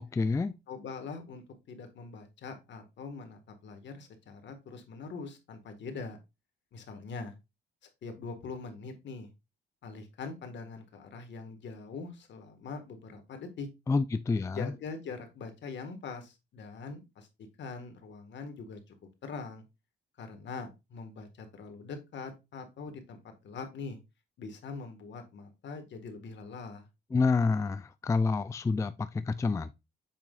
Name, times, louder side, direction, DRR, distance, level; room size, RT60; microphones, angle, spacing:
voice 1, 0.0-0.6 13.9-14.7 27.1-29.7, left 4 dB, 15° left, 0.3 m, -28 dB
voice 2, 0.7-6.2 6.7-7.3 8.0-9.3 9.8-13.7 14.5-17.3 17.6-18.8 19.2-19.6 20.2-24.0 24.4-26.9, left 4 dB, 65° left, 1.7 m, -43 dB
7.4 x 5.2 x 2.4 m
cardioid pair, 90°, 20 cm